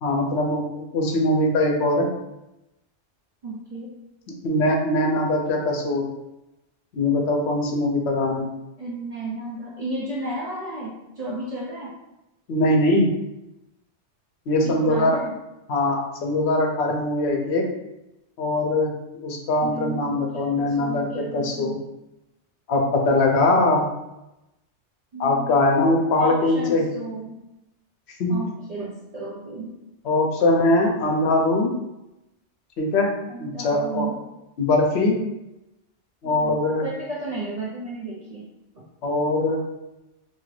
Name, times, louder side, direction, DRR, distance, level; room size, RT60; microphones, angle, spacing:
voice 1, 0.0-2.1 4.4-6.1 6.9-8.5 12.5-13.1 14.5-15.2 15.7-17.6 18.4-18.9 19.2-21.7 22.7-23.8 25.2-26.9 28.2-28.3 30.0-31.7 32.8-33.1 33.4-34.1 34.6-35.2 36.2-36.9 39.0-39.6, left 2 dB, 70° left, 1 dB, 0.9 m, -21 dB
voice 2, 3.4-3.9 8.8-11.9 14.6-15.3 19.6-21.8 25.1-25.8 26.2-27.4 28.3-29.7 33.3-34.2 36.2-38.5 38.7-38.8, right 2 dB, 50° right, -5 dB, 0.5 m, -33 dB
2.8 x 2.4 x 3.1 m, 0.93 s
omnidirectional pair, 1.2 m